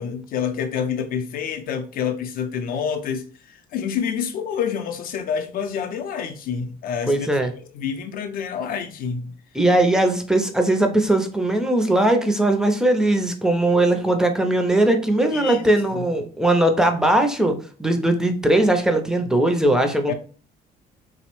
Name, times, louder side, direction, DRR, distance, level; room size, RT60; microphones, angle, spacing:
voice 1, 0.0-7.3 7.7-9.3 15.3-15.7 15.9-16.0 20.1-20.2, left 7 dB, 60° left, 0.5 m, -28 dB
voice 2, 7.1-7.5 9.5-20.1, right 1 dB, 5° right, 0.4 m, -19 dB
2.8 x 2.0 x 3.0 m
cardioid pair, 110°, 17 cm